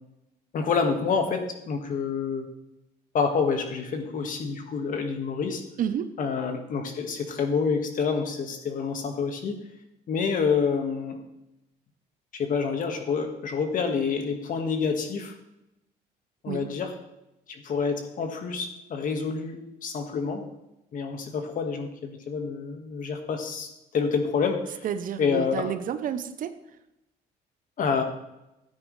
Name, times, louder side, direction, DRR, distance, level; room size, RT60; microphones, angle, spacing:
voice 1, 0.5-2.5 3.1-5.6 6.2-9.5 10.1-11.2 12.3-15.3 16.4-16.9 17.5-20.4 20.9-24.8 25.2-25.7 27.8-28.0, left 5 dB, 50° left, 5 dB, 1.8 m, -28 dB
voice 2, 5.8-6.1 16.5-16.7 24.8-26.5, right 9 dB, 55° right, 11 dB, 0.8 m, -30 dB
12.5 x 9.6 x 3.3 m, 0.90 s
cardioid pair, 110°, 17 cm